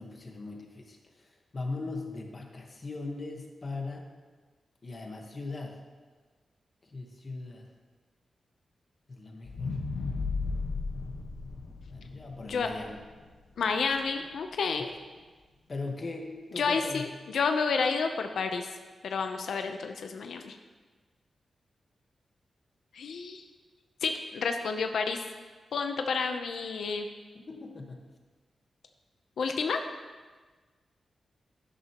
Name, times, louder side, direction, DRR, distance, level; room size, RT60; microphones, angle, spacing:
voice 1, 0.0-4.1 4.8-5.8 6.8-7.7 9.1-9.8 11.9-13.0 14.8-15.0 15.7-17.0 27.3-28.0, left 3 dB, 35° left, 2 dB, 1.3 m, -39 dB
sound 1, 9.4-13.7 14.2-14.3, left 4 dB, 65° left, 1.2 m, -35 dB
voice 2, 13.6-14.9 16.6-18.7 19.0-20.6 22.9-23.4 24.0-25.2 25.7-27.1 29.4-29.8, left 5 dB, 80° left, 5 dB, 0.7 m, -30 dB
12.0 x 11.0 x 3.0 m, 1.4 s
wide cardioid pair, 140°, 0 cm